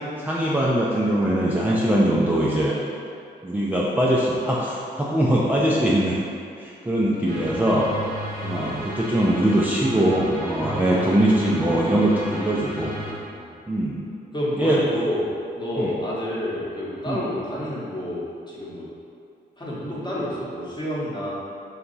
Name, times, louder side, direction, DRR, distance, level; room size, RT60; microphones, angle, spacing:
voice 1, 0.2-2.8 3.4-6.2 6.6-7.9 8.4-12.9 13.7-14.0 14.6-14.8 15.8-15.9 17.1-17.2, right 1 dB, 10° right, -6 dB, 0.4 m, -22 dB
voice 2, 7.1-7.7 8.5-8.8 10.9-11.2 12.9-13.5 14.3-15.3 15.6-18.9 19.6-21.3, left 1 dB, 25° left, -7 dB, 0.9 m, -29 dB
sound 1, 7.3-13.1, right 1 dB, 55° right, 0.7 m, -33 dB
2.8 x 2.3 x 3.9 m, 2.5 s
cardioid pair, 65°, 19 cm